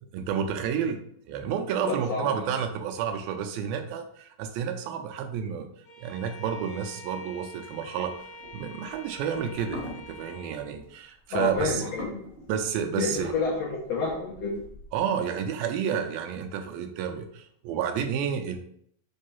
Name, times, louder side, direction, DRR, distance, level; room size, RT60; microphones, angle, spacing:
voice 1, 0.1-1.0 1.3-5.7 6.0-8.2 8.5-11.8 12.5-13.3 14.9-18.6, right 8 dB, 80° right, 6 dB, 2.2 m, -30 dB
voice 2, 1.8-2.5 11.3-12.3 13.0-14.6, left 4 dB, 85° left, -2 dB, 1.4 m, -29 dB
Bowed string instrument, 5.8-10.7, left 1 dB, 35° left, 2.7 m, -46 dB
sound 1, 8.1-15.1, left 1 dB, 15° left, 1.4 m, -45 dB
5.5 x 3.6 x 5.4 m, 0.67 s
omnidirectional pair, 4.5 m